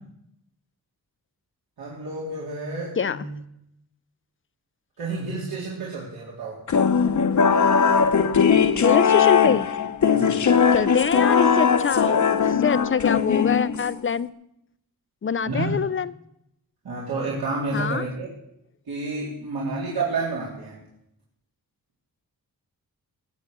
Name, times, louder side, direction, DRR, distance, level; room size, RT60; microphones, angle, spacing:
voice 1, 1.8-3.3 5.0-6.6 10.1-10.4 15.5-15.7 16.8-18.3 18.9-20.8, right 3 dB, 80° right, 3.8 m, -30 dB
sound 1, 6.7-14.1, left 6 dB, 50° left, 0.9 m, -19 dB
voice 2, 8.8-9.7 10.7-14.3 15.2-16.1 17.7-18.0, left 6 dB, 35° left, 0.5 m, -24 dB
21.0 x 8.6 x 6.7 m
wide cardioid pair, 165°, 37 cm